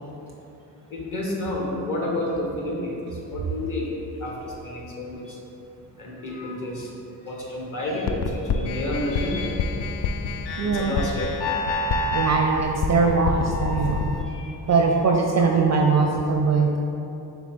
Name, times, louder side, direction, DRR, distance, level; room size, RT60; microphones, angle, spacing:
voice 1, 0.9-5.2 6.0-6.9 7.2-9.6 10.6-11.3 14.3-14.5 15.4-15.5, left 1 dB, 40° left, -3 dB, 1.3 m, -30 dB
sound 1, 8.1-14.2, left 3 dB, 60° left, 0.5 m, -27 dB
voice 2, 10.6-11.0 12.1-14.1 14.7-16.8, right 4 dB, 35° right, 1 dB, 0.4 m, -21 dB
5.9 x 2.3 x 3.6 m, 2.9 s
supercardioid pair, 45°, 48 cm